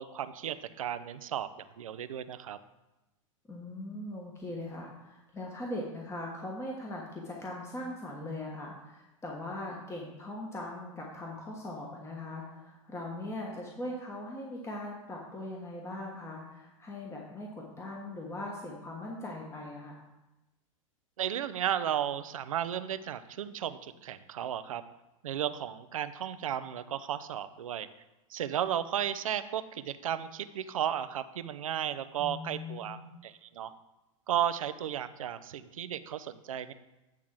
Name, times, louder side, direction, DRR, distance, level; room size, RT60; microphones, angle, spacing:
voice 1, 0.0-2.6 21.2-24.8 25.2-27.9 28.3-33.7 34.3-36.7, right 10 dB, 80° right, 12 dB, 0.5 m, -34 dB
voice 2, 3.5-20.0 32.2-33.0, left 1 dB, 15° left, -2 dB, 1.3 m, -40 dB
9.0 x 3.6 x 6.0 m, 1.0 s
hypercardioid pair, 105°, 17 cm